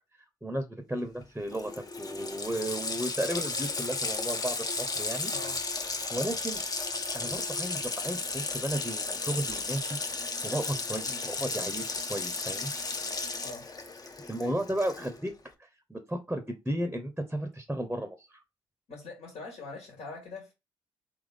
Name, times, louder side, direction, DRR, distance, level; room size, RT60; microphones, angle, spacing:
voice 1, 0.4-1.7 2.0-5.3 6.1-6.6 7.1-10.0 10.4-12.7 14.3-15.3 15.6-18.4, right 1 dB, 10° right, 8 dB, 0.8 m, -34 dB
Water tap faucet, 1.2-1.3 1.5-15.3, left 3 dB, 30° left, 0.8 m, -34 dB
voice 2, 5.3-5.6 6.2-6.3 11.0-11.2 13.4-13.6 14.4-14.6 18.9-20.5, left 3 dB, 70° left, 0 dB, 1.7 m, -43 dB
3.6 x 3.1 x 3.5 m, 0.25 s
hypercardioid pair, 45°, 12 cm